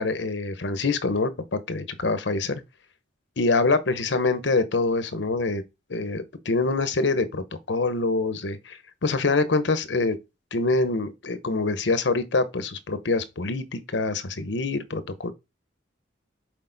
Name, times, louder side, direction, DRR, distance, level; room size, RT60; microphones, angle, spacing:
voice 1, 0.0-2.6 3.4-5.6 5.9-10.2 10.5-15.3, left 3 dB, 75° left, 0.9 m, -25 dB
6.5 x 4.2 x 3.9 m
head